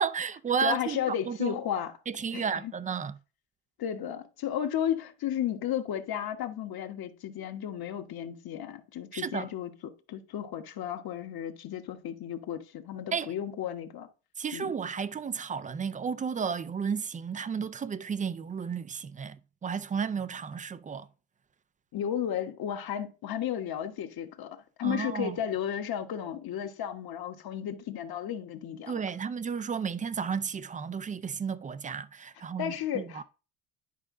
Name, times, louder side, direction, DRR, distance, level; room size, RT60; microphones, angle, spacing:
voice 1, 0.0-1.6 2.1-3.1 9.1-9.5 13.1-13.3 14.4-19.4 19.6-21.1 24.8-25.4 28.9-33.2, right 6 dB, 20° right, 0.3 m, -33 dB
voice 2, 0.6-1.9 2.3-2.7 3.8-14.1 14.5-14.7 21.9-29.0 32.6-33.2, left 10 dB, 50° left, 1.3 m, -33 dB
11.0 x 5.0 x 3.7 m
cardioid pair, 120°, 47 cm